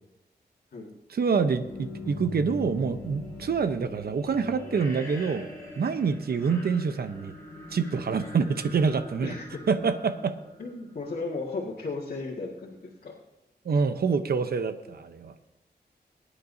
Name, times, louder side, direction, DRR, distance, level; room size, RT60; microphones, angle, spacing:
voice 1, 1.1-5.5 5.8-7.3 7.7-9.3 9.7-10.4 13.6-15.3, right 5 dB, 65° right, 9 dB, 0.9 m, -26 dB
sound 1, 1.4-11.2, left 1 dB, 15° left, 4.2 m, -42 dB
voice 2, 9.2-9.7 10.6-13.1, left 3 dB, 65° left, -5 dB, 1.9 m, -35 dB
21.5 x 10.0 x 2.7 m, 0.99 s
wide cardioid pair, 115°, 17 cm